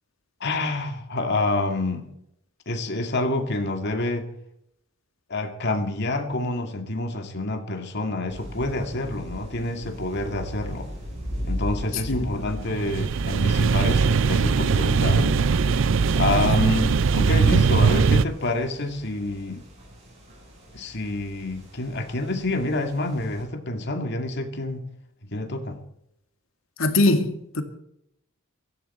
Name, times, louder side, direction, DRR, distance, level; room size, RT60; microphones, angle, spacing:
voice 1, 0.4-2.1 2.7-4.3 5.3-10.9 11.5-15.4 16.2-19.6 20.7-24.9 25.3-25.8, left 2 dB, 55° left, 2.2 m, -27 dB
sound 1, 8.3-23.4, equal, 30° right, 7.9 m, -38 dB
sound 2, 12.6-18.3, right 5 dB, 65° right, 0.5 m, -20 dB
voice 2, 26.8-27.6, left 2 dB, 75° left, 2.2 m, -21 dB
16.5 x 14.0 x 4.4 m
head